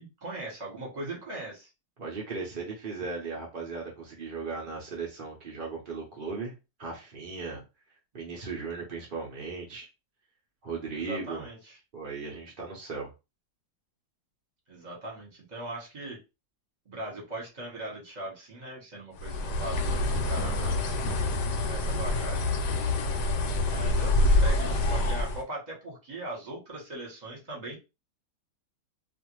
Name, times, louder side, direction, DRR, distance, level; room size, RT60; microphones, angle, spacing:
voice 1, 0.0-1.7 10.9-11.8 14.7-16.2 16.9-21.1 21.7-22.5 23.6-27.8, right 2 dB, 30° right, -2 dB, 1.0 m, -40 dB
voice 2, 2.0-6.5 6.8-7.6 8.1-9.9 10.6-11.4 11.9-13.1 20.4-20.7, right 4 dB, 70° right, -1 dB, 0.4 m, -37 dB
Bird, 19.2-25.4, left 2 dB, 75° left, 1.2 m, -26 dB
2.5 x 2.5 x 3.0 m, 0.27 s
omnidirectional pair, 1.9 m